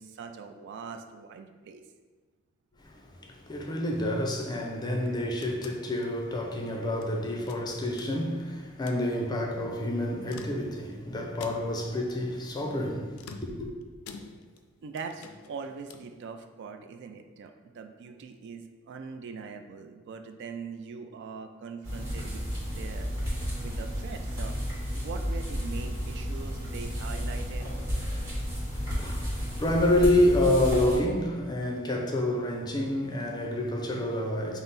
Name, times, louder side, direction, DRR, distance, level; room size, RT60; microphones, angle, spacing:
voice 1, 0.0-1.8 14.8-23.1 23.6-24.6 24.9-27.7, right 5 dB, 55° right, 0.3 m, -42 dB
voice 2, 2.8-13.7 28.7-34.6, left 1 dB, 20° left, 0.4 m, -28 dB
sound 1, 5.1-7.1 7.5-8.4 8.7-9.1 10.1-11.0 11.4-11.9 13.1-14.7 15.0-16.2, left 4 dB, 85° left, 0.4 m, -47 dB
sound 2, 21.8-31.0, equal, 15° right, 1.4 m, -32 dB
5.5 x 2.0 x 3.9 m
head